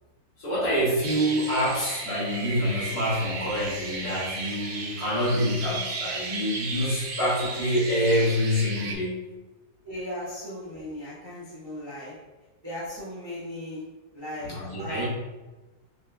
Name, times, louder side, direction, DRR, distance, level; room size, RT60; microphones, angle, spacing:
voice 1, 0.4-9.2 14.4-15.0, equal, 55° left, -7 dB, 1.6 m, -26 dB
sound 1, 1.0-8.9, right 3 dB, 70° right, 1.1 m, -35 dB
voice 2, 9.8-12.1 12.6-13.8 14.1-15.0, left 1 dB, 25° right, -9 dB, 0.6 m, -37 dB
5.6 x 2.7 x 2.3 m, 1.1 s
omnidirectional pair, 2.0 m